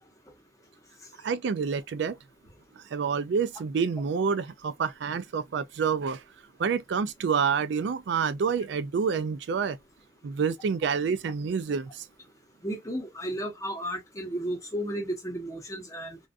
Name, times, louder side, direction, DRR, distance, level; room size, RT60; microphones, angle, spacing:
voice 1, 1.2-2.2 2.8-6.2 6.6-9.8 10.2-12.1, right 6 dB, 70° right, 0.3 m, -28 dB
voice 2, 12.6-16.2, right 1 dB, 15° left, 0.7 m, -33 dB
2.5 x 2.3 x 2.2 m
head